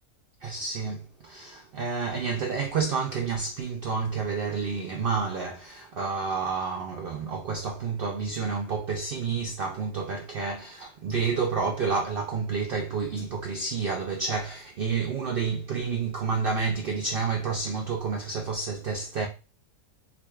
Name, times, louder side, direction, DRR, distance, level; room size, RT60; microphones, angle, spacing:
voice 1, 0.4-19.3, right 5 dB, 70° right, 0.5 m, -29 dB
4.8 x 2.5 x 2.2 m
omnidirectional pair, 1.4 m